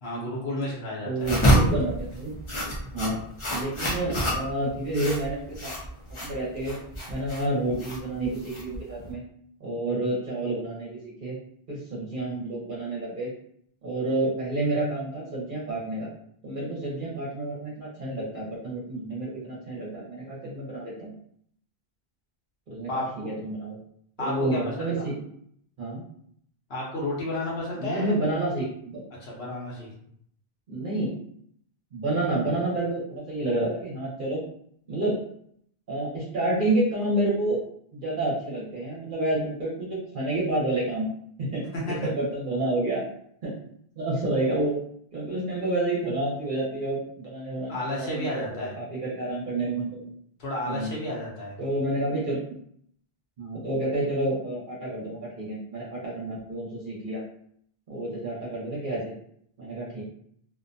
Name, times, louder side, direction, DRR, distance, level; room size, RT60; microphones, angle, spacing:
voice 1, 0.0-1.3 22.9-23.3 24.2-24.6 25.0-25.1 26.7-28.1 29.2-29.9 41.7-42.0 47.7-48.7 50.4-51.6, left 1 dB, 80° left, -5 dB, 1.0 m, -32 dB
voice 2, 1.1-2.3 2.8-3.2 3.5-5.7 6.2-6.8 7.1-9.2 9.6-11.4 11.7-13.3 13.8-16.1 16.4-21.1 22.7-23.8 24.2-25.1 25.8-26.0 27.8-29.0 30.7-31.2 31.9-34.4 34.9-35.2 35.9-37.6 37.9-41.1 41.4-43.0 43.4-43.5 44.0-44.7 45.1-48.4 48.8-50.0 50.7-50.9 51.6-52.6 53.4-57.2 57.9-59.1 59.6-60.0, right 2 dB, 55° right, -6 dB, 0.9 m, -29 dB
sound 1, 1.2-9.1, equal, 40° left, 0.5 m, -27 dB
2.5 x 2.1 x 2.5 m, 0.67 s
omnidirectional pair, 1.0 m